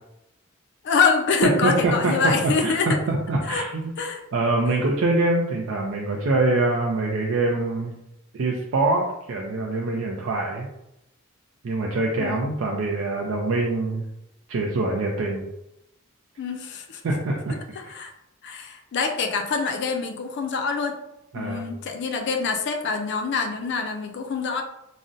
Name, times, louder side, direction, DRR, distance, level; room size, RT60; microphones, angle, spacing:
voice 1, 0.8-3.0 3.5-3.6 4.0-4.2 12.2-12.4 16.4-17.0 17.8-18.1 18.4-21.0 21.3-24.6, left 4 dB, 55° left, 4 dB, 0.4 m, -25 dB
voice 2, 1.6-3.9 4.3-7.9 8.3-10.7 11.6-14.0 14.5-15.5 17.0-17.6 21.3-21.6, right 2 dB, 70° right, -1 dB, 0.4 m, -24 dB
3.6 x 2.0 x 2.5 m, 0.85 s
head